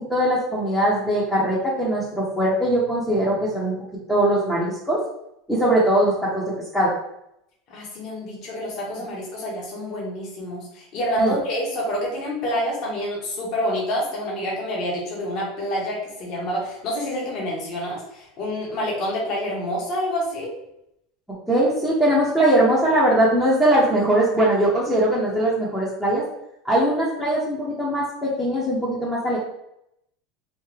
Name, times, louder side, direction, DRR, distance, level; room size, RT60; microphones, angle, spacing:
voice 1, 0.1-3.8 4.1-5.0 5.5-6.9 11.2-11.3 21.5-26.2 26.6-29.4, right 1 dB, 5° left, -8 dB, 0.8 m, -21 dB
voice 2, 7.7-20.5, equal, 50° left, -4 dB, 1.4 m, -28 dB
3.4 x 2.6 x 3.2 m, 0.79 s
supercardioid pair, 135°, 0 cm